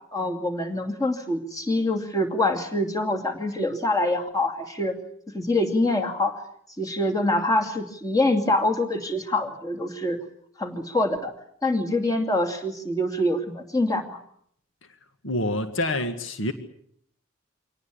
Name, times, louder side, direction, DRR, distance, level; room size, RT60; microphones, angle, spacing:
voice 1, 0.1-4.9 5.3-6.4 6.8-10.2 10.6-11.3 11.6-14.2, left 1 dB, 20° left, 3 dB, 2.6 m, -25 dB
voice 2, 15.2-16.5, left 1 dB, 70° left, 8 dB, 1.9 m, -27 dB
25.5 x 18.5 x 8.5 m, 0.68 s
head